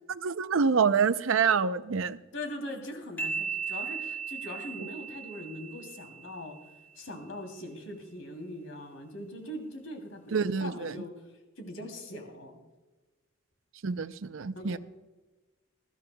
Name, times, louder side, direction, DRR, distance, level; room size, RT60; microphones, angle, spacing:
voice 1, 0.1-2.2 10.3-10.9 13.8-14.8, right 6 dB, 75° right, 14 dB, 0.5 m, -26 dB
voice 2, 2.3-6.6 7.0-11.1 11.6-12.6 14.5-14.8, left 1 dB, 75° left, 3 dB, 3.0 m, -41 dB
sound 1, 3.2-6.7, right 5 dB, 10° left, 3.0 m, -37 dB
20.5 x 14.0 x 2.3 m, 1.2 s
head